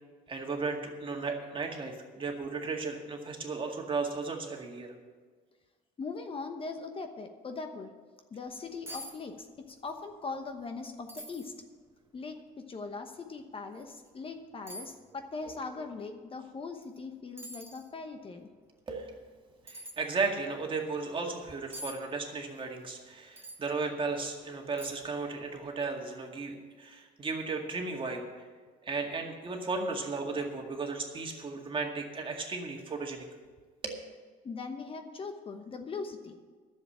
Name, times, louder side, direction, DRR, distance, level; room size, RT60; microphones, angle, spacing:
voice 1, 0.3-4.9 18.9-19.2 19.7-28.5 28.8-33.3 33.8-34.0, right 4 dB, 30° right, 2 dB, 2.0 m, -35 dB
voice 2, 6.0-8.0 8.3-11.5 12.1-18.5 34.4-36.3, left 4 dB, 30° left, 6 dB, 1.0 m, -40 dB
sound 1, 8.5-8.6 8.9-9.2 9.4-10.0 10.3-10.4 11.1-11.5 12.2-12.3 13.7-13.9 14.7-14.9 16.8-17.0 17.4-17.9 19.7-20.0 21.7-22.0 23.4-23.6 24.2-24.3 24.8-25.2 25.5-25.6, equal, 15° right, 1.5 m, -44 dB
11.0 x 7.4 x 8.5 m, 1.5 s
cardioid pair, 110°, 17 cm